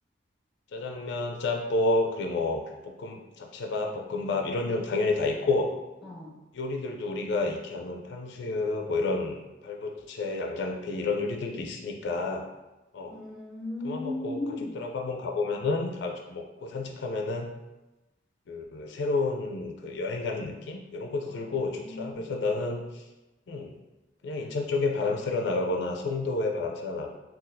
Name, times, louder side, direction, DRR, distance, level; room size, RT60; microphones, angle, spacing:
voice 1, 0.7-5.7 6.5-12.4 12.9-13.2 13.8-14.4 14.8-17.5 18.5-23.0 23.5-23.7 24.2-27.1, left 3 dB, 70° left, 2 dB, 0.4 m, -30 dB
voice 2, 6.0-6.3 13.1-14.8 21.2-22.3, left 2 dB, ahead, -4 dB, 0.8 m, -37 dB
3.9 x 2.3 x 2.6 m, 1.0 s
head